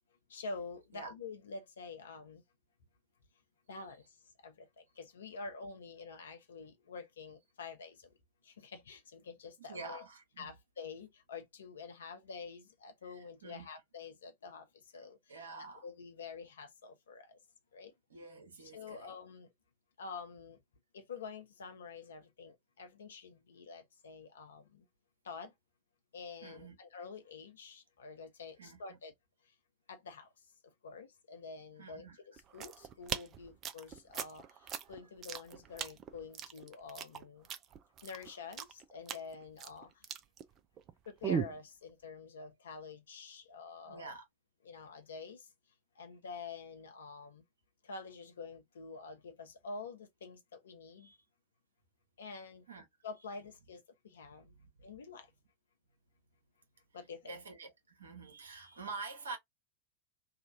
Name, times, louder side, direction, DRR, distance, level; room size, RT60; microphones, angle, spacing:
voice 1, 0.3-2.4 3.7-8.2 8.4-10.0 10.4-15.5 15.8-17.4 17.7-17.9 18.6-19.5 20.0-20.6 20.9-24.9 25.2-25.5 26.1-29.1 29.4-29.5 29.9-30.3 30.6-37.5 38.0-40.1 41.1-44.1 44.6-45.5 46.0-47.4 47.8-51.1 52.2-52.7 53.0-54.5 54.8-55.3 56.9-57.3, left 4 dB, 65° left, 0.8 m, -48 dB
voice 2, 9.6-10.5 13.1-13.7 15.3-15.8 18.1-19.1 26.4-26.8 28.6-29.0 31.8-32.2 34.8-34.9 43.9-44.2 51.0-51.2 52.7-52.8 54.5-54.9 57.3-59.4, right 4 dB, 70° right, 1.0 m, -47 dB
sound 1, 32.4-40.9 41.2-41.6, right 8 dB, 30° right, 0.4 m, -39 dB
2.8 x 2.4 x 2.6 m
figure-of-eight pair, 90°, 0 cm